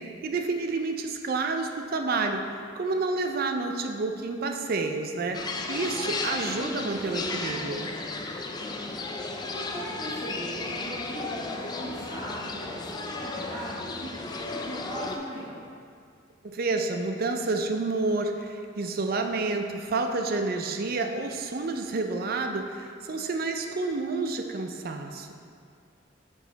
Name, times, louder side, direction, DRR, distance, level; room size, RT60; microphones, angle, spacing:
voice 1, 0.0-5.4 5.7-7.9 16.4-25.4, right 3 dB, 50° right, 5 dB, 0.5 m, -29 dB
sound 1, 5.3-15.2, left 3 dB, 20° left, 0.3 m, -34 dB
voice 2, 9.3-15.5, right 1 dB, 20° right, -10 dB, 1.1 m, -39 dB
6.4 x 4.9 x 3.9 m, 2.3 s
head